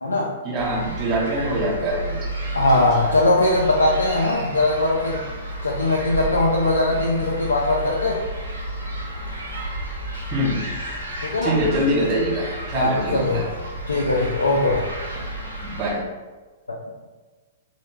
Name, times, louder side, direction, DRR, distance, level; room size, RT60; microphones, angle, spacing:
voice 1, 0.4-2.2 2.7-2.8 10.3-10.7 11.4-13.4 15.6-16.0, right 1 dB, 30° right, -5 dB, 0.7 m, -24 dB
sound 1, 0.6-15.9, right 1 dB, 85° right, 0.6 m, -31 dB
voice 2, 2.5-5.2 5.6-8.2 11.2-11.6 12.7-13.5 13.9-14.9 16.7-16.8, left 2 dB, 80° left, -3 dB, 0.3 m, -20 dB
2.3 x 2.1 x 3.1 m, 1.3 s
figure-of-eight pair, 110°, 0 cm